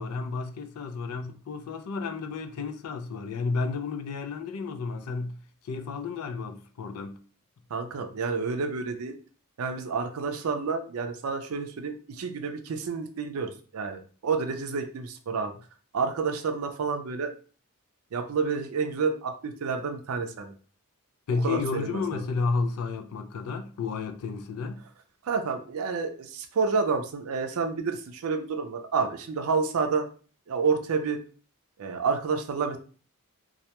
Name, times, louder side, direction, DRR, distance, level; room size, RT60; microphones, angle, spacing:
voice 1, 0.0-5.4 5.6-7.2 21.3-24.8, left 4 dB, 85° left, 0.4 m, -32 dB
voice 2, 7.7-9.1 9.6-15.5 15.9-17.3 18.1-20.5 21.4-22.2 25.2-30.1 30.5-31.2 31.8-32.8, right 5 dB, 75° right, 0.4 m, -29 dB
2.3 x 2.2 x 2.8 m
head